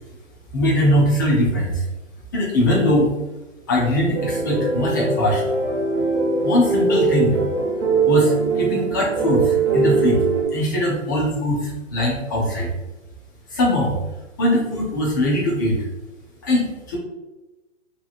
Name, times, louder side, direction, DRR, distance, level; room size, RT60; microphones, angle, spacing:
voice 1, 0.5-1.8 2.3-3.1 3.7-5.4 6.4-7.4 8.1-10.2 10.5-12.7 13.5-14.0 14.4-15.9 16.4-17.0, left 1 dB, 15° left, -4 dB, 0.4 m, -21 dB
sound 1, 4.1-10.4, right 4 dB, 60° right, 1.0 m, -21 dB
2.8 x 2.7 x 2.4 m, 1.1 s
hypercardioid pair, 140°, 38 cm